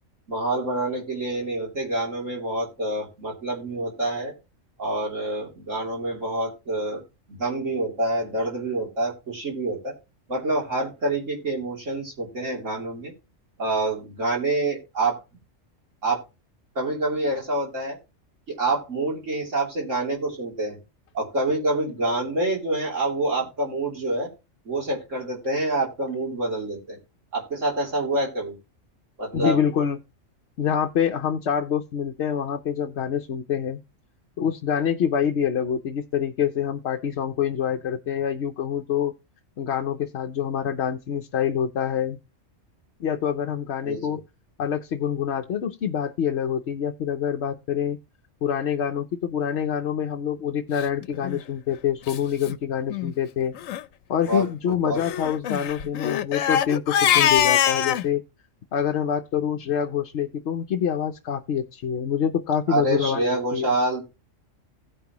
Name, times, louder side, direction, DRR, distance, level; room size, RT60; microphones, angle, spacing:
voice 1, 0.3-4.3 4.8-7.0 7.3-9.9 10.3-13.1 13.6-15.2 16.0-16.2 16.8-18.0 18.5-20.8 21.1-24.3 24.7-27.0 27.3-28.5 29.2-29.6 43.8-44.2 54.3-55.0 62.7-64.0, right 2 dB, 70° right, 3.5 m, -27 dB
voice 2, 29.3-30.0 30.6-33.8 34.4-39.1 39.6-42.2 43.0-44.2 44.6-48.0 48.4-53.5 54.1-58.2 58.7-63.3 63.5-63.8, left 8 dB, 60° left, 0.9 m, -26 dB
Crying sobbing, 51.2-51.4 52.1-52.2 52.4-52.6 52.9-53.1 53.6-53.8 55.0-58.0, left 10 dB, 90° left, 1.0 m, -23 dB
16.5 x 5.6 x 2.9 m
omnidirectional pair, 1.3 m